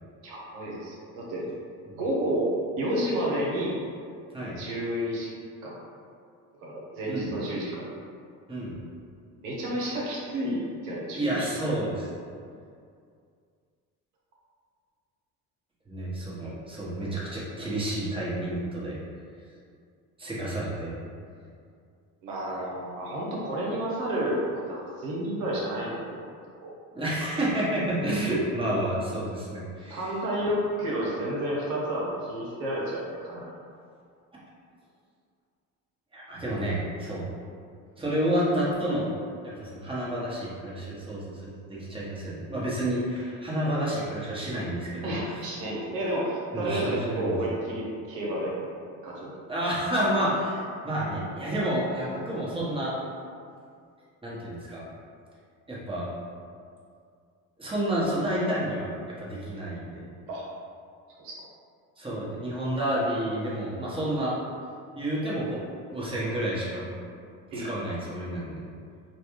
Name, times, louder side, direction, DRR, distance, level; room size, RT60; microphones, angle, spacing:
voice 1, 0.2-1.4 2.0-2.5 2.8-3.8 4.6-5.3 5.6-5.7 6.6-7.9 9.3-11.5 22.2-26.3 26.6-26.7 29.9-33.5 45.0-48.8 49.0-49.3 60.3-60.4 61.2-61.4 67.5-67.7, right 1 dB, 85° right, -5 dB, 0.7 m, -30 dB
voice 2, 11.1-12.1 15.9-19.0 20.2-21.0 26.9-30.1 36.1-37.3 38.0-39.1 39.4-45.1 46.5-47.3 49.5-52.9 54.2-54.8 55.7-56.0 57.6-58.9 59.2-60.0 62.0-64.3 65.0-66.9 67.5-68.6, right 1 dB, 15° right, -7 dB, 1.1 m, -30 dB
3.2 x 2.2 x 3.1 m, 2.3 s
hypercardioid pair, 60°, 39 cm